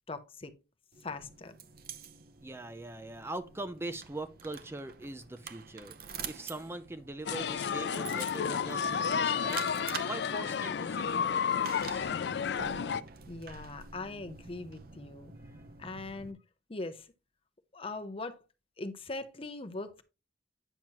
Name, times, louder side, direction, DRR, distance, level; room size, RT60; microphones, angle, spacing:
voice 1, 0.1-0.5 1.0-1.5 13.3-15.3 15.8-16.4 16.7-17.1 17.7-18.4 18.8-20.0, left 2 dB, 35° left, 0.8 m, -40 dB
sound 1, 0.9-16.3, right 7 dB, 60° right, 0.7 m, -47 dB
voice 2, 2.4-12.1 15.4-15.6, right 2 dB, 15° right, 0.5 m, -42 dB
sound 2, 7.3-13.0, left 7 dB, 70° left, 0.4 m, -31 dB
9.0 x 5.9 x 2.9 m
head